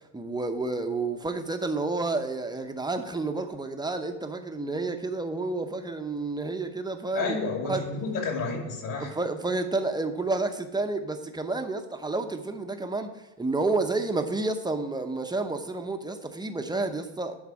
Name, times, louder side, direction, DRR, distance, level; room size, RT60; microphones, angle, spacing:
voice 1, 0.1-7.3 7.7-7.9 9.0-17.3, right 3 dB, 10° right, 6 dB, 0.7 m, -30 dB
voice 2, 7.1-9.1, left 4 dB, 45° left, 1 dB, 2.6 m, -30 dB
10.5 x 4.0 x 6.3 m, 1.1 s
supercardioid pair, 105°, 43 cm